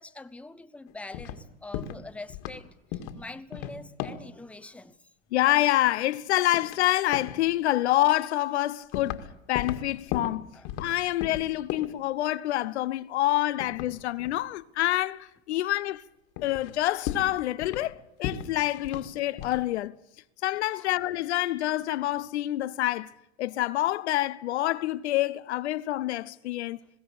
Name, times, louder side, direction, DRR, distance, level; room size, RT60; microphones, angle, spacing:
voice 1, 0.0-2.7 3.1-5.0 10.5-10.7 20.7-20.9, left 2 dB, 5° left, 0.9 m, -44 dB
sound 1, 0.9-1.4 1.7-2.0 2.3-2.6 2.9-3.2 3.5-4.3 5.5-6.2 6.5-6.9 7.1-7.4 8.1-8.2 8.9-9.3 9.6-10.9 11.2-12.0 13.6-14.4 15.8-15.9 16.4-16.7 17.0-17.9 18.2-19.1 19.4-19.6, left 10 dB, 60° left, 2.1 m, -36 dB
voice 2, 5.3-10.5 10.8-16.0 16.4-20.0 20.4-23.1 23.4-26.8, left 15 dB, 85° left, 0.9 m, -27 dB
21.5 x 16.0 x 8.7 m
supercardioid pair, 105°, 33 cm